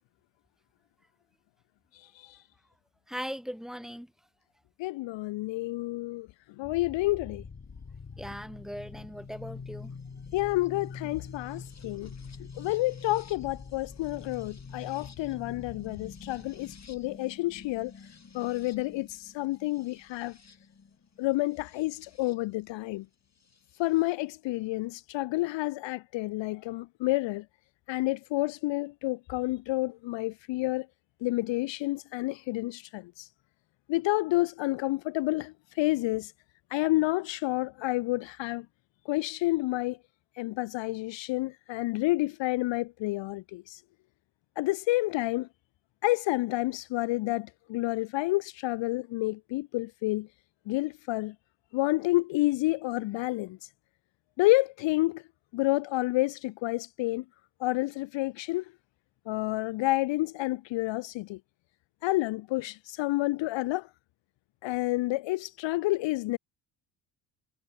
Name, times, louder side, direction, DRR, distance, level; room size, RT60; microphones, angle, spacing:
voice 1, 1.9-2.4 4.8-6.3 6.6-7.4 10.3-12.1 12.6-17.9 18.3-20.4 21.2-23.1 23.8-27.4 27.9-30.9 31.2-33.3 33.9-36.3 36.7-38.7 39.1-40.0 40.4-43.8 44.6-45.5 46.0-50.3 50.7-51.3 51.7-53.6 54.4-55.2 55.5-57.2 57.6-58.6 59.3-61.4 62.0-63.9 64.6-66.4, left 19 dB, 65° left, 0.7 m, -29 dB
voice 2, 3.1-4.1 8.2-9.9, equal, ahead, 5.4 m, -39 dB
sound 1, 6.6-22.4 23.5-24.1, left 5 dB, 30° left, 6.2 m, -46 dB
supercardioid pair, 65°, 50 cm